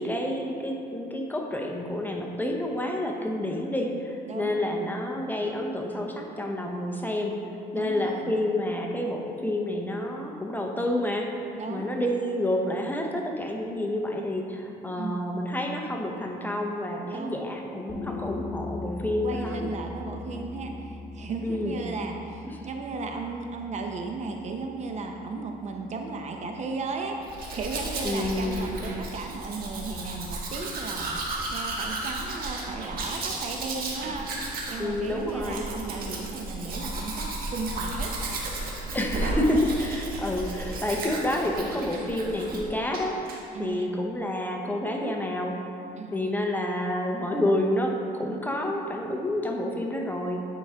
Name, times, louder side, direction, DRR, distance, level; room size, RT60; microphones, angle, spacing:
voice 1, 0.0-7.4 7.7-19.7 21.4-21.8 22.6-22.7 28.0-28.9 34.8-35.7 38.9-43.2 43.6-45.6 46.1-50.4, left 1 dB, 10° left, 1 dB, 0.6 m, -29 dB
voice 2, 7.7-8.3 11.6-11.9 15.0-15.2 17.1-17.5 19.2-38.1 43.5-44.0 46.0-46.3, right 3 dB, 45° right, 3 dB, 0.7 m, -35 dB
sound 1, 17.9-29.3, left 3 dB, 25° left, 1.1 m, -41 dB
Domestic sounds home sounds, 27.2-42.7 42.9-43.4, right 2 dB, 60° right, 1.2 m, -34 dB
8.9 x 4.8 x 3.4 m, 2.6 s
cardioid pair, 110°, 17 cm